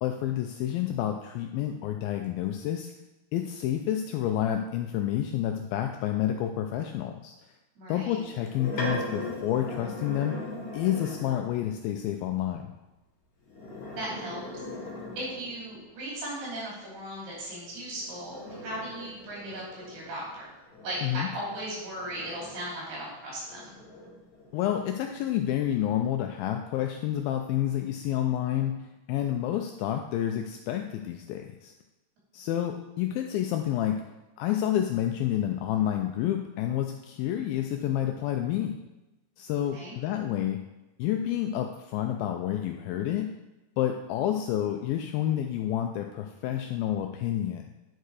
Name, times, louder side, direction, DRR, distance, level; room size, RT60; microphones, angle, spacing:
voice 1, 0.0-2.9 3.3-7.3 7.9-10.4 10.7-12.7 21.0-21.3 24.5-31.7 32.3-34.0 34.4-38.8 39.4-40.6 41.0-43.3 43.8-47.7, left 11 dB, 80° left, 4 dB, 2.2 m, -29 dB
voice 2, 7.8-8.2 14.0-14.4 15.1-18.4 18.6-20.4 20.8-23.7 39.7-40.0, right 1 dB, 80° right, -5 dB, 5.1 m, -37 dB
sound 1, 8.2-11.5 13.4-15.8 17.7-22.9 23.5-25.2, left 1 dB, 55° left, 3.0 m, -39 dB
10.0 x 4.6 x 4.8 m, 1.0 s
omnidirectional pair, 4.5 m